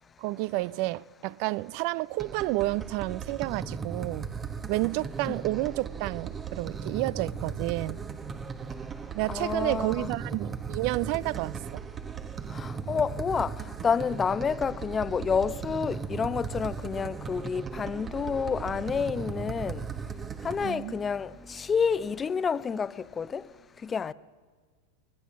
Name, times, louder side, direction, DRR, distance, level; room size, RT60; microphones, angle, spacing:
voice 1, 0.2-4.2 4.7-8.0 9.1-11.8 19.6-19.7 20.6-20.9, right 20 dB, 55° right, 0.6 m, -30 dB
sound 1, 2.2-20.7, right 6 dB, 25° right, 1.0 m, -37 dB
sound 2, 3.1-22.3, equal, 5° right, 1.4 m, -52 dB
voice 2, 9.3-10.1 12.5-19.9 20.4-23.5 23.8-24.1, left 6 dB, 20° left, 0.8 m, -29 dB
22.0 x 20.5 x 7.3 m
hypercardioid pair, 100°, 0 cm